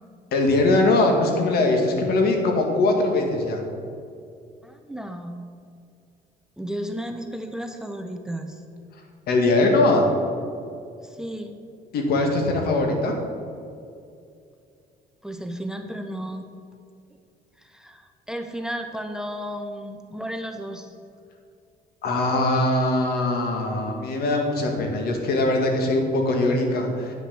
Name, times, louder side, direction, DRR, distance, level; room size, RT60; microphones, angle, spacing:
voice 1, 0.3-3.6 9.3-10.1 11.9-13.1 22.0-27.1, left 2 dB, 65° left, 3 dB, 2.0 m, -21 dB
voice 2, 4.6-5.4 6.6-8.6 11.0-11.5 15.2-16.5 17.1-17.2 17.6-20.9, equal, 5° right, 6 dB, 0.7 m, -33 dB
9.7 x 6.4 x 7.0 m, 2.4 s
cardioid pair, 110°, 17 cm